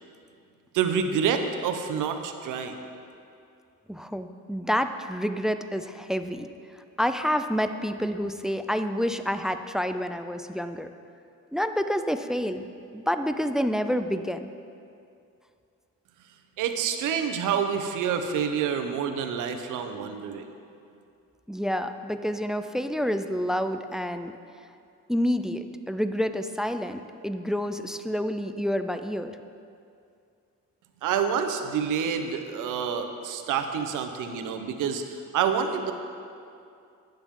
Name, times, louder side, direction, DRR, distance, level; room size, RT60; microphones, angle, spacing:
voice 1, 0.7-2.8 16.6-20.4 31.0-35.9, right 7 dB, 85° right, 7 dB, 0.9 m, -28 dB
voice 2, 3.9-6.5 7.0-10.9 11.5-12.7 12.9-14.5 21.5-24.3 25.1-29.4, equal, ahead, 9 dB, 0.3 m, -28 dB
11.5 x 9.1 x 3.8 m, 2.5 s
cardioid pair, 100°, 30 cm